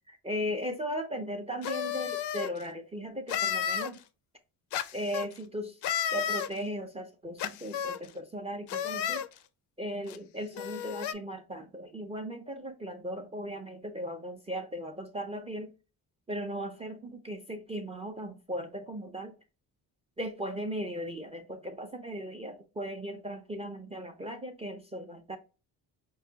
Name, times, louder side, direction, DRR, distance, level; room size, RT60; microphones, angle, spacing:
voice 1, 0.1-4.0 4.9-5.8 6.1-9.2 9.8-15.7 16.3-19.4 20.2-25.4, equal, 15° right, 0.4 m, -37 dB
sound 1, 1.6-2.5 3.3-3.9 4.7-5.3 5.8-6.5 7.4-8.0 8.7-9.3 10.1-10.2 10.5-11.1, left 9 dB, 80° left, 0.5 m, -32 dB
5.3 x 2.2 x 2.7 m
cardioid pair, 140°, 39 cm